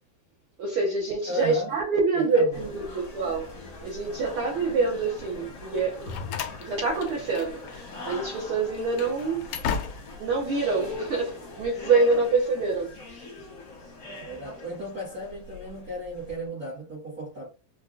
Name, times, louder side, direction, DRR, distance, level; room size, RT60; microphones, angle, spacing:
voice 1, 0.6-3.5 3.8-6.1 6.6-9.5 10.2-13.3, right 3 dB, 75° right, 1.2 m, -26 dB
voice 2, 1.3-1.7 2.1-2.7 14.2-17.5, equal, 55° right, 1.0 m, -35 dB
sound 1, 2.5-16.4, left 3 dB, 55° left, 1.2 m, -41 dB
Slam, 5.7-7.8 8.0-8.2 8.7-10.3, left 7 dB, 75° left, 1.8 m, -35 dB
5.3 x 2.3 x 2.4 m
omnidirectional pair, 3.7 m